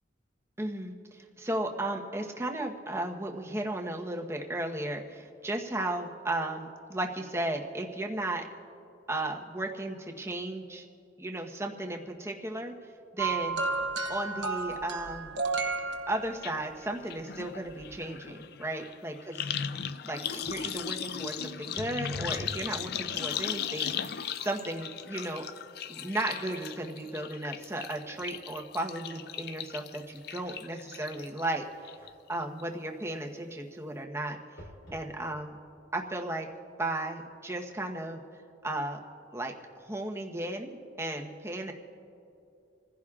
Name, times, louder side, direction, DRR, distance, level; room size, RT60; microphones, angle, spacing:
voice 1, 0.6-8.5 9.1-10.9 11.2-13.6 14.1-15.3 16.1-19.3 20.0-25.4 25.9-31.6 32.3-34.4 34.9-35.5 35.9-36.5 36.8-38.2 38.6-39.0 39.3-41.7, right 1 dB, 15° right, 2 dB, 1.0 m, -35 dB
sound 1, 13.2-16.7 17.8-17.9, right 4 dB, 75° right, 1.2 m, -32 dB
sound 2, 16.4-16.5 16.8-31.5 31.8-32.3 32.6-32.7, left 8 dB, 55° left, 0.4 m, -37 dB
sound 3, 20.4-20.9 21.8-22.7 23.0-23.5 24.3-24.4 24.8-28.4 28.9-29.0 29.6-32.4 34.6-35.1 35.8-35.9 36.1-36.2, left 1 dB, 80° left, 3.1 m, -49 dB
27.5 x 15.5 x 2.4 m, 2.6 s
head